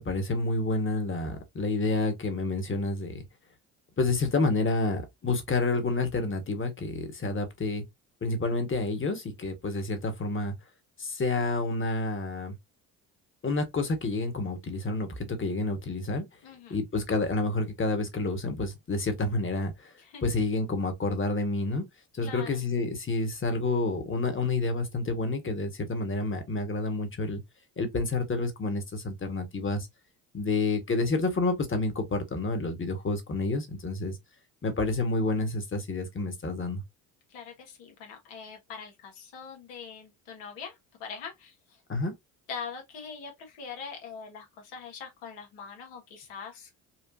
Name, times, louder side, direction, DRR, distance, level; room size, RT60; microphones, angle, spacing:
voice 1, 0.0-3.2 4.0-7.8 8.2-10.5 11.0-12.5 13.4-16.2 16.7-19.9 20.2-21.8 22.1-27.4 27.8-29.9 30.3-34.2 34.6-36.8 41.9-42.1, left 3 dB, 30° left, 1.4 m, -29 dB
voice 2, 16.4-16.8 20.0-20.2 22.2-22.6 37.3-41.8 42.5-46.7, left 6 dB, 75° left, 1.4 m, -42 dB
4.4 x 2.4 x 2.6 m
hypercardioid pair, 65°, 42 cm